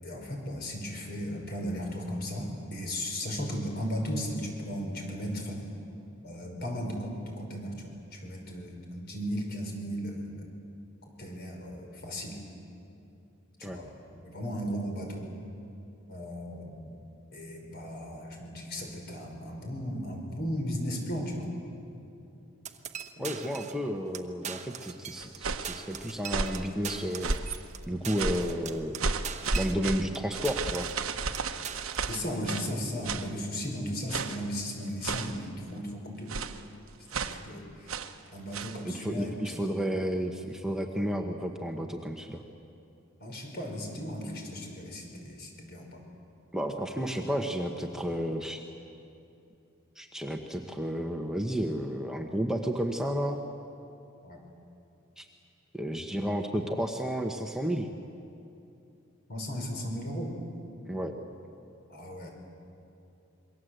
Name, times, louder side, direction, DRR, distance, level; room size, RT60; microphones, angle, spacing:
voice 1, 0.0-5.6 6.2-10.5 11.2-12.4 13.6-15.3 16.1-17.0 17.3-21.5 23.2-23.3 32.1-36.4 37.1-37.9 38.3-39.6 43.2-46.0 54.2-54.4 59.3-60.3 61.9-62.3, equal, 50° left, 1 dB, 5.7 m, -36 dB
sound 1, 22.6-23.8 24.1-24.2 24.4-25.4 25.6-30.2 30.4-31.0 31.3-32.2, right 7 dB, 35° right, 1.2 m, -41 dB
voice 2, 23.2-27.3 27.9-29.0 29.5-30.9 38.8-42.4 46.5-48.6 50.0-53.4 55.2-55.3 55.7-57.9 60.9-61.2, equal, 5° right, 2 dB, 1.1 m, -32 dB
sound 2, 25.2-25.8 26.2-26.7 27.2-27.6 28.2-28.5 29.0-32.7 33.0-33.3 34.1-34.5 35.0-35.4 36.3-36.6 37.1-37.4 37.9-38.2 38.5-38.8, right 4 dB, 85° right, 1.2 m, -33 dB
27.5 x 23.0 x 8.0 m, 2.7 s
head